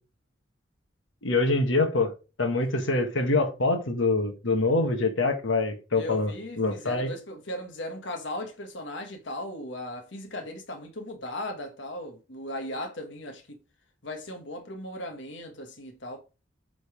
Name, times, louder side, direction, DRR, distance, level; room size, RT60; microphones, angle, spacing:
voice 1, 1.2-2.1 2.4-7.1, left 2 dB, 90° left, 1.4 m, -25 dB
voice 2, 5.9-13.6 14.0-16.2, left 1 dB, 65° left, 1.3 m, -37 dB
8.4 x 3.9 x 5.0 m
head